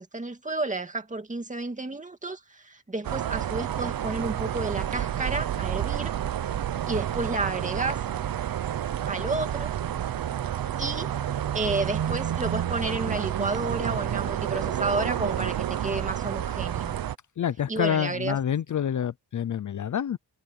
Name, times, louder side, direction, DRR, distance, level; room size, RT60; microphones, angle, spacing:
voice 1, 0.0-6.1 6.9-8.0 9.1-9.7 10.8-11.1 11.5-17.0 17.7-18.4, right 3 dB, 20° right, 2.3 m, -31 dB
sound 1, 3.0-17.2, right 10 dB, 60° right, 0.8 m, -29 dB
voice 2, 17.4-20.2, left 9 dB, 50° left, 0.6 m, -27 dB
wide cardioid pair, 160°, 40 cm